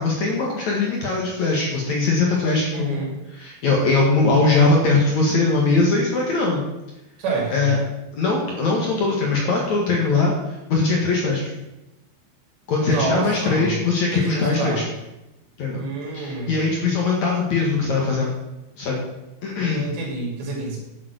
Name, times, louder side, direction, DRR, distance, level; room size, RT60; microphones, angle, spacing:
voice 1, 0.0-6.6 7.5-7.8 8.1-11.5 12.7-14.9 15.6-15.8 16.1-18.3 18.8-19.1 19.4-19.9, left 3 dB, 60° left, -1 dB, 2.0 m, -21 dB
voice 2, 2.7-3.1 7.2-7.7 12.8-13.8 14.1-14.9 15.7-16.6 19.6-20.8, right 3 dB, 65° right, -1 dB, 4.8 m, -28 dB
11.5 x 7.3 x 6.3 m, 0.95 s
omnidirectional pair, 5.4 m